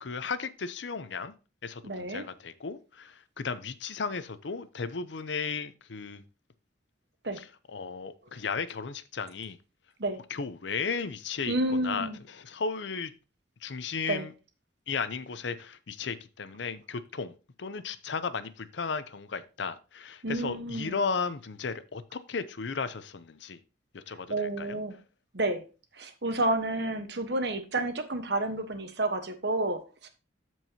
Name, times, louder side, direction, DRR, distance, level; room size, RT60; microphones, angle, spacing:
voice 1, 0.0-1.3 1.6-6.2 7.4-9.6 10.3-13.1 13.6-14.3 14.9-17.3 17.6-23.6 23.9-24.8, left 5 dB, 70° left, 0.6 m, -35 dB
voice 2, 1.8-2.2 7.2-7.4 10.0-10.2 11.5-12.2 14.1-14.2 20.2-20.9 24.3-25.0 25.3-25.6 26.0-30.1, right 2 dB, 60° right, 1.2 m, -30 dB
13.5 x 4.6 x 2.8 m
head